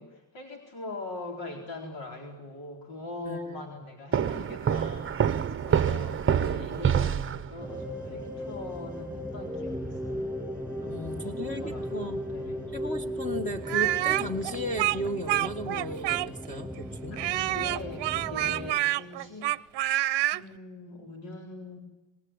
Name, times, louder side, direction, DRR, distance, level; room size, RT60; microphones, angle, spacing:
voice 1, 0.0-5.4 5.6-10.3 10.8-12.7 17.1-19.5 20.3-21.8, left 2 dB, 70° left, 2 dB, 4.4 m, -42 dB
voice 2, 3.2-3.8 5.8-6.2 10.9-12.2 12.7-17.2, equal, 15° left, 5 dB, 1.8 m, -35 dB
sound 1, 4.1-7.8, right 8 dB, 25° right, 0.9 m, -26 dB
sound 2, 7.6-18.7, equal, 5° right, 7.9 m, -36 dB
Speech, 13.7-16.6 17.2-20.4, right 15 dB, 60° right, 0.8 m, -27 dB
27.0 x 19.5 x 9.0 m, 1.1 s
cardioid pair, 130°, 46 cm